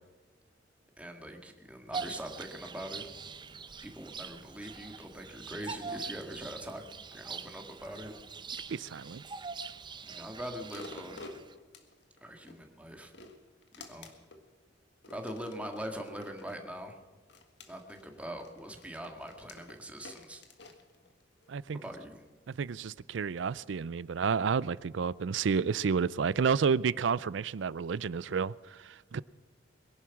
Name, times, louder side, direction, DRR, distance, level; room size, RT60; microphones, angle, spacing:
voice 1, 1.0-3.1 3.8-6.8 7.1-8.2 10.0-11.3 12.2-13.1 13.8-14.1 15.1-17.0 17.7-20.4 21.7-22.2, right 1 dB, 5° right, 1.8 m, -42 dB
Bird vocalization bird call bird song, 1.9-11.5, right 5 dB, 25° right, 0.7 m, -43 dB
voice 2, 8.7-9.2 21.5-21.8 22.5-29.2, right 6 dB, 70° right, 0.4 m, -30 dB
sound 1, 10.7-12.6 13.0-14.4 15.0-16.6 17.3-21.5 22.0-22.1, left 3 dB, 65° left, 1.8 m, -50 dB
22.0 x 11.0 x 5.9 m
head